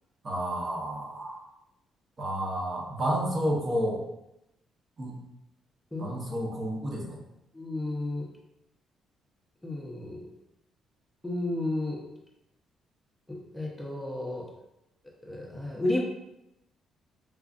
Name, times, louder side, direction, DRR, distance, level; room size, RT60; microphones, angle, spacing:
voice 1, 0.2-1.4 2.2-4.0 5.0-5.2 6.0-7.2, equal, 40° right, -2 dB, 1.0 m, -30 dB
voice 2, 7.5-8.3 9.6-10.2 11.2-12.0 13.3-14.4 15.2-16.0, left 2 dB, 10° left, -2 dB, 0.7 m, -32 dB
4.8 x 2.4 x 2.4 m, 0.86 s
cardioid pair, 90°, 0 cm